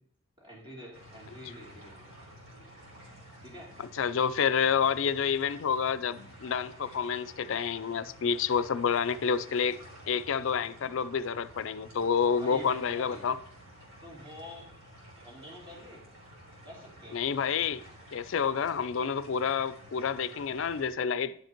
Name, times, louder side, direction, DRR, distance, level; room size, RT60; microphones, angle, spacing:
voice 1, 0.4-2.1 3.4-3.7 12.4-13.2 14.0-14.6 15.2-16.0 16.6-17.2, left 1 dB, 25° right, 2.6 m, -47 dB
sound 1, 0.9-20.9, equal, 65° right, 3.3 m, -51 dB
voice 2, 3.8-9.8 10.1-13.4 17.1-17.8 18.1-21.4, left 6 dB, 65° left, 0.4 m, -29 dB
10.5 x 5.3 x 4.4 m
head